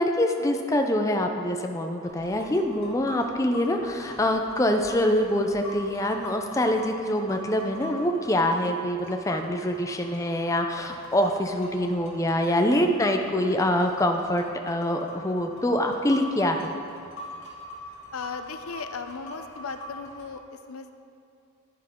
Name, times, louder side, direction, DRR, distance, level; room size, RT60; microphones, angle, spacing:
voice 1, 0.0-16.7, left 1 dB, 15° left, 4 dB, 0.5 m, -25 dB
sound 1, 2.0-20.3, equal, 60° left, 2.2 m, -44 dB
voice 2, 18.1-20.9, left 4 dB, 85° left, 8 dB, 0.6 m, -37 dB
10.5 x 10.0 x 3.7 m, 2.5 s
head